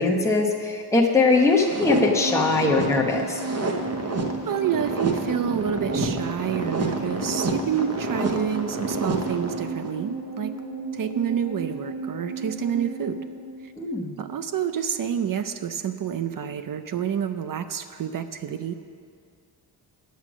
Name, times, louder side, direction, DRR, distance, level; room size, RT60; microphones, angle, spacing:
voice 1, 0.0-3.4 13.8-14.1, left 3 dB, 5° left, -2 dB, 1.0 m, -21 dB
sound 1, 1.3-9.9, right 2 dB, 35° right, 1.0 m, -29 dB
sound 2, 1.9-14.4 14.7-14.8, right 3 dB, 80° right, 1.6 m, -34 dB
voice 2, 4.5-10.5 10.9-13.2 13.6-13.7 14.2-18.7, right 8 dB, 55° right, 10 dB, 0.5 m, -28 dB
9.4 x 7.5 x 6.1 m, 2.2 s
wide cardioid pair, 115°, 41 cm